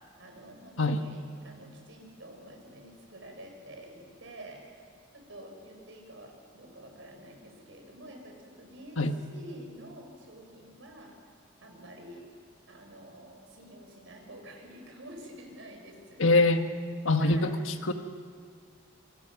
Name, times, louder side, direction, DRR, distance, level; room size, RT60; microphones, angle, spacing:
voice 1, 0.2-4.6 5.1-9.0 9.3-11.1 11.6-12.2 12.7-16.2 17.2-17.5, right 1 dB, 65° right, 2 dB, 5.1 m, -48 dB
voice 2, 16.2-16.6 17.0-17.9, left 2 dB, 80° left, 7 dB, 1.5 m, -24 dB
27.0 x 22.0 x 6.0 m, 2.2 s
head